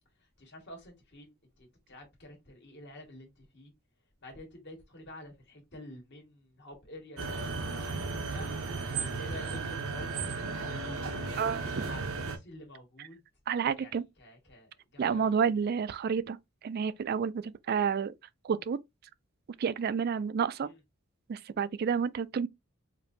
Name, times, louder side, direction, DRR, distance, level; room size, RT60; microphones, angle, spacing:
voice 1, 0.4-3.7 4.2-7.9 8.2-8.5 9.0-10.1 10.6-13.2 13.6-13.9 14.2-15.3 20.6-20.8, left 1 dB, 55° left, 1.6 m, -48 dB
sound 1, 7.2-12.4, right 4 dB, 85° right, 0.8 m, -35 dB
voice 2, 11.4-11.8 13.0-13.1 13.5-14.0 15.0-16.4 16.6-18.1 18.4-18.8 19.6-20.7 21.3-22.5, right 6 dB, 45° right, 0.3 m, -30 dB
5.1 x 2.7 x 2.6 m
head